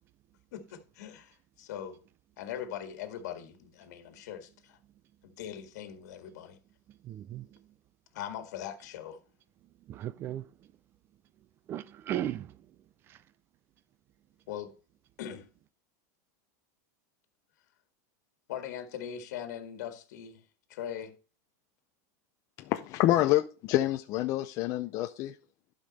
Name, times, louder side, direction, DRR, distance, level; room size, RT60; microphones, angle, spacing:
voice 1, 0.5-2.0 2.4-4.8 5.2-6.6 8.1-9.2 14.5-14.7 15.2-15.5 18.5-20.4 20.7-21.2, left 9 dB, 75° left, 1.8 m, -41 dB
voice 2, 6.9-7.7 9.8-10.7 11.7-12.7 13.1-13.2, right 12 dB, 25° right, 0.4 m, -37 dB
voice 3, 22.6-25.3, left 15 dB, 35° left, 0.5 m, -27 dB
11.5 x 5.2 x 4.1 m
supercardioid pair, 170°, 9 cm